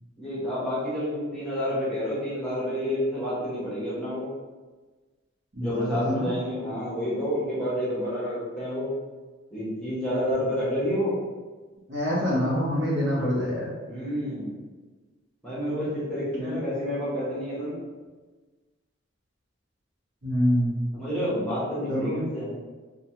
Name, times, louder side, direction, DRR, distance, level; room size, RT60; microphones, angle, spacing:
voice 1, 0.2-4.3 5.6-8.9 9.5-11.1 13.8-14.5 15.4-17.8 20.9-22.5, equal, 5° left, -10 dB, 0.9 m, -29 dB
voice 2, 5.5-6.3 11.9-13.7 16.4-16.6 20.2-20.8 21.9-22.1, equal, 55° right, -7 dB, 0.9 m, -26 dB
3.0 x 2.2 x 2.7 m, 1.3 s
head